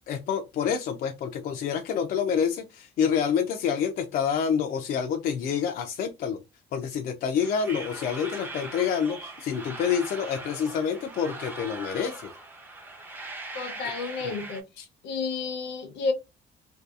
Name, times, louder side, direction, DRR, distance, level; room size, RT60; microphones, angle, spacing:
voice 1, 0.1-6.4 6.7-12.3 14.8-14.9, left 7 dB, 55° left, 0.4 m, -27 dB
sound 1, 7.4-14.6, right 2 dB, 10° right, 0.5 m, -40 dB
voice 2, 13.5-14.6 15.0-16.1, left 4 dB, 80° left, 0.8 m, -31 dB
2.6 x 2.2 x 2.3 m
cardioid pair, 125°, 18 cm